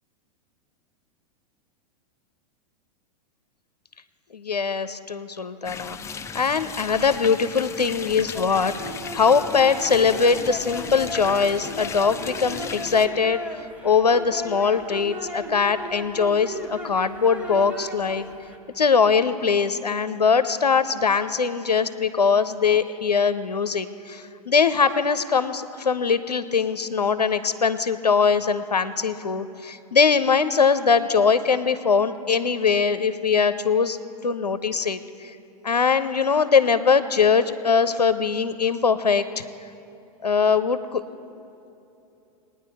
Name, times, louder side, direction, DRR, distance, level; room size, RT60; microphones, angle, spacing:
voice 1, 4.3-6.0 6.3-8.7 9.1-18.2 18.8-34.0 34.2-35.4 35.6-39.4 40.2-41.0, left 5 dB, 85° left, 12 dB, 0.5 m, -21 dB
sound 1, 5.6-13.1, left 6 dB, 15° left, 0.5 m, -36 dB
sound 2, 8.3-18.6, equal, 5° right, 1.1 m, -36 dB
21.0 x 9.6 x 3.4 m, 2.8 s
figure-of-eight pair, 95°, 20 cm